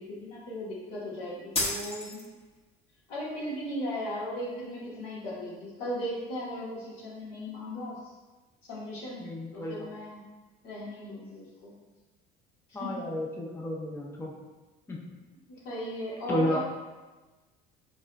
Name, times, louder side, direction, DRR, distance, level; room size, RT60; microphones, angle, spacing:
voice 1, 0.0-2.2 3.1-8.0 8.6-10.2 10.6-11.7 12.8-12.9 15.6-16.6, equal, 80° left, -7 dB, 1.4 m, -37 dB
sound 1, 1.5-2.6, left 1 dB, 30° left, 0.9 m, -32 dB
voice 2, 9.2-9.9 12.7-14.3 14.9-15.0 16.3-16.6, left 1 dB, 10° left, -2 dB, 0.5 m, -32 dB
3.6 x 3.2 x 2.3 m, 1.2 s
supercardioid pair, 100°, 20 cm